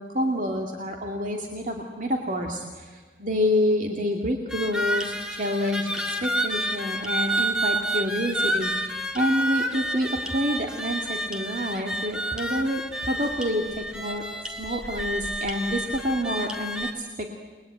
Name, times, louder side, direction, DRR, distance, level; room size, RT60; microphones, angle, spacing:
voice 1, 0.0-5.9 6.2-14.3 14.6-17.4, equal, 45° right, 2 dB, 2.3 m, -28 dB
sound 1, 4.5-16.9, right 1 dB, 5° right, 2.0 m, -29 dB
29.5 x 21.5 x 9.2 m, 1.4 s
head